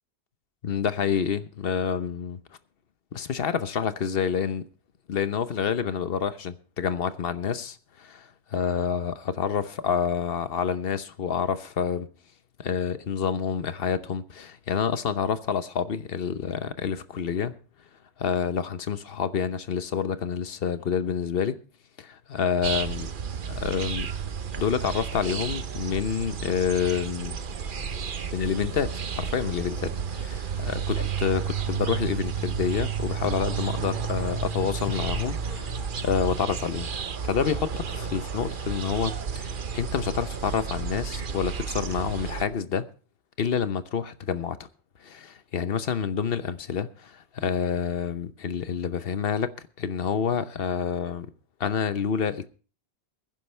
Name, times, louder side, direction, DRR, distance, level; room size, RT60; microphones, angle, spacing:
voice 1, 0.6-2.4 3.1-4.6 5.1-12.1 12.6-17.6 18.2-21.6 22.0-23.1 23.5-24.1 24.6-27.4 28.3-36.9 37.2-42.9 43.4-44.6 45.0-49.5 49.8-51.3 51.6-52.5, left 7 dB, 65° left, 1.1 m, -28 dB
sound 1, 22.6-42.4, right 6 dB, 55° right, 1.0 m, -32 dB
21.5 x 10.5 x 3.2 m
omnidirectional pair, 1.1 m